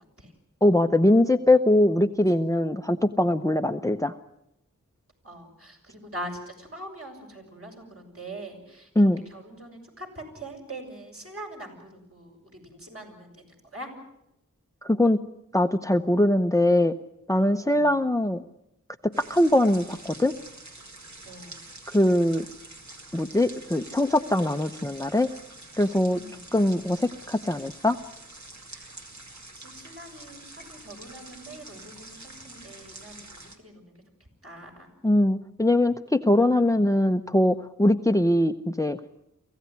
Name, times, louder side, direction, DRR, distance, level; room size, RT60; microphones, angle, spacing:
voice 1, 0.6-4.1 9.0-9.2 14.8-15.2 15.5-16.9 17.3-18.4 19.2-20.3 21.9-22.4 23.1-25.3 25.8-26.2 26.5-28.0 35.0-39.0, left 1 dB, 10° left, 10 dB, 0.8 m, -22 dB
voice 2, 5.2-13.9 17.6-18.0 21.2-21.6 26.1-26.5 28.7-28.9 29.5-33.9 34.4-34.9, right 1 dB, 45° right, 1 dB, 6.6 m, -43 dB
sound 1, 19.1-33.6, right 2 dB, 60° right, 2.5 m, -46 dB
24.5 x 16.0 x 9.5 m, 0.82 s
wide cardioid pair, 50°, 32 cm